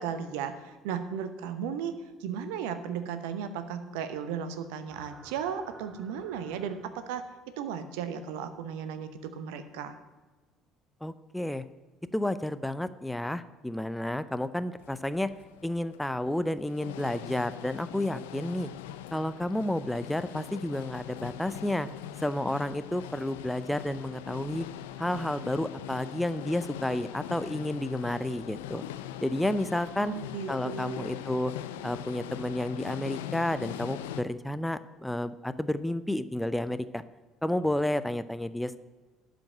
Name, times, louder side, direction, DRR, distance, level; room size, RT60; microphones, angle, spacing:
voice 1, 0.0-1.9 2.2-7.2 7.6-9.9 30.0-31.1, right 7 dB, 70° right, 10 dB, 0.8 m, -35 dB
sound 1, 4.9-7.3, right 4 dB, 40° right, 1.1 m, -55 dB
voice 2, 11.0-11.6 12.1-15.3 15.6-18.7 19.1-21.9 22.2-24.7 25.0-28.8 29.2-30.1 30.5-31.5 31.8-37.0 37.4-38.7, left 1 dB, 5° left, 13 dB, 0.5 m, -31 dB
sound 2, 14.8-34.2, left 11 dB, 75° left, 0.4 m, -41 dB
12.0 x 5.3 x 7.6 m, 1.3 s
figure-of-eight pair, 55°, 0 cm